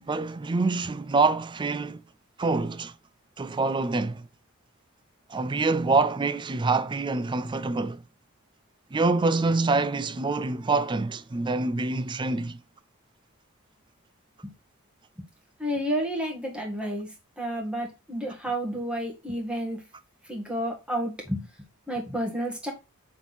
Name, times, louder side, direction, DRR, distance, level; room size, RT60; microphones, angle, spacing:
voice 1, 0.1-2.0 2.4-2.9 3.4-4.3 5.3-8.0 8.9-12.6, right 3 dB, 20° right, 0.4 m, -26 dB
voice 2, 15.6-19.8 20.2-21.5 21.9-22.7, equal, 5° right, 1.8 m, -31 dB
6.9 x 3.9 x 4.0 m
head